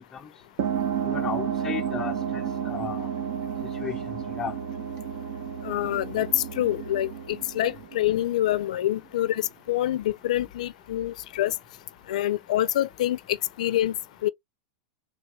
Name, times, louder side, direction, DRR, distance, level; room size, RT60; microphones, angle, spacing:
sound 1, 0.6-8.7, right 8 dB, 60° right, 1.1 m, -31 dB
voice 1, 1.1-3.1 3.8-4.5, left 7 dB, 15° left, 0.5 m, -35 dB
voice 2, 5.6-11.5 12.1-14.0 14.2-14.3, left 13 dB, 75° left, 0.4 m, -26 dB
3.6 x 3.1 x 2.8 m
supercardioid pair, 150°, 4 cm